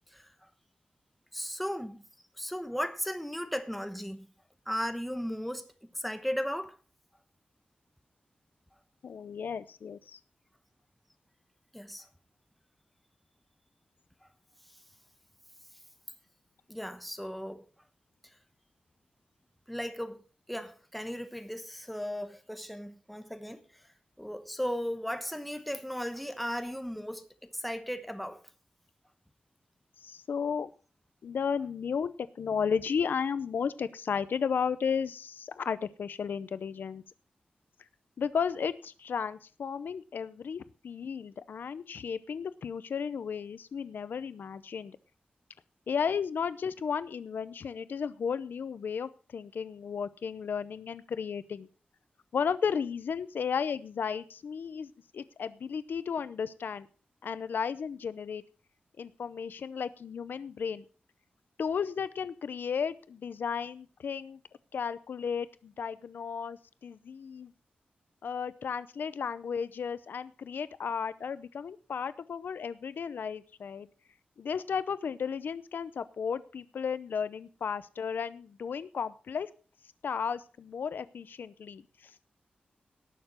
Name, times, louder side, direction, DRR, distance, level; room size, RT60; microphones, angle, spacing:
voice 1, 1.3-2.0 2.4-4.3 4.7-5.6 5.9-6.8 11.7-12.1 16.7-17.6 19.7-20.2 20.5-23.8 24.2-28.4, equal, ahead, 1.0 m, -36 dB
voice 2, 9.0-10.2 30.0-30.7 31.2-37.0 38.2-45.0 45.9-51.7 52.3-56.9 57.2-58.4 59.0-60.8 61.6-64.4 64.7-67.5 68.2-73.9 74.4-79.5 80.0-82.1, left 6 dB, 90° left, 0.6 m, -34 dB
18.5 x 6.8 x 4.3 m
wide cardioid pair, 155°, 3 cm